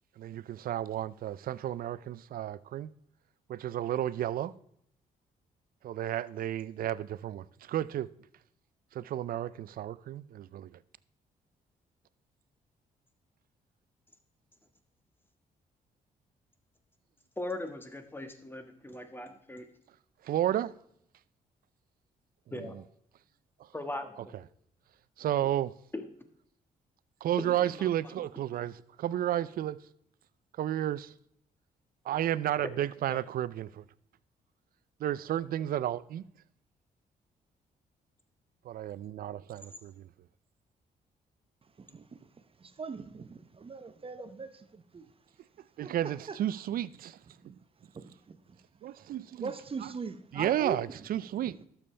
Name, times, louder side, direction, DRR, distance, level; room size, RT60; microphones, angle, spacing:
voice 1, 0.2-2.9 3.5-4.5 5.8-8.1 8.9-10.7 20.2-20.7 22.6-22.8 25.2-25.7 27.2-29.8 30.6-31.1 32.1-33.8 35.0-36.2 38.6-40.1 45.8-47.2 47.5-47.6 48.8-49.5 49.8-49.9 50.3-51.6, right 12 dB, 65° right, 0.5 m, -32 dB
voice 2, 17.4-19.7 22.5-22.7 23.7-24.4 25.9-26.0 27.4-27.7 28.5-28.6 33.1-33.2, left 1 dB, 15° left, 1.4 m, -39 dB
voice 3, 41.8-45.1 45.8-46.4 47.4-48.6 49.0-49.1 49.4-50.8 51.4-51.6, right 5 dB, 35° right, 0.8 m, -41 dB
12.0 x 7.1 x 3.3 m
cardioid pair, 70°, 16 cm